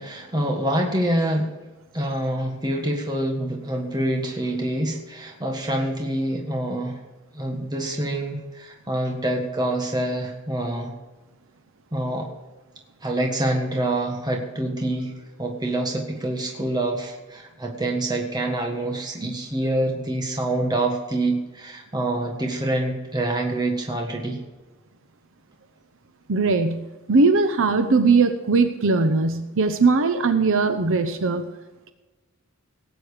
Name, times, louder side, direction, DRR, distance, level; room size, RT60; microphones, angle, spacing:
voice 1, 0.0-1.5 1.9-7.0 7.3-10.9 11.9-12.3 13.0-15.1 15.4-24.4, right 1 dB, 20° right, 1 dB, 1.6 m, -26 dB
voice 2, 26.3-26.8 27.1-31.5, right 4 dB, 60° right, 8 dB, 0.8 m, -20 dB
18.0 x 9.1 x 5.1 m, 1.2 s
head